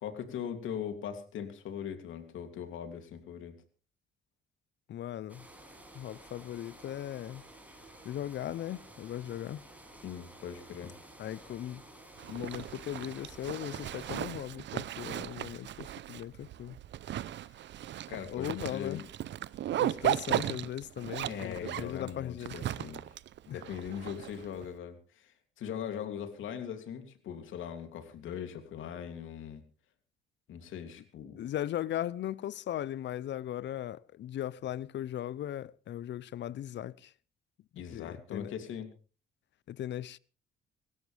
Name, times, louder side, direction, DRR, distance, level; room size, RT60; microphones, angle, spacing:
voice 1, 0.0-3.6 10.0-10.9 18.1-19.0 21.3-23.0 23.5-29.6 30.5-31.4 37.8-38.9, left 8 dB, 80° left, 2.9 m, -40 dB
voice 2, 4.9-5.5 5.9-7.4 8.0-9.7 11.2-11.8 12.3-16.8 18.3-19.0 19.8-22.5 23.5-23.6 31.4-37.1 37.7-38.5 39.7-40.2, left 11 dB, 65° left, 0.7 m, -38 dB
sound 1, 5.3-14.2, right 1 dB, 10° right, 6.9 m, -53 dB
Zipper (clothing), 12.2-24.7, right 12 dB, 65° right, 0.7 m, -36 dB
25.0 x 13.0 x 3.4 m
cardioid pair, 90°, 20 cm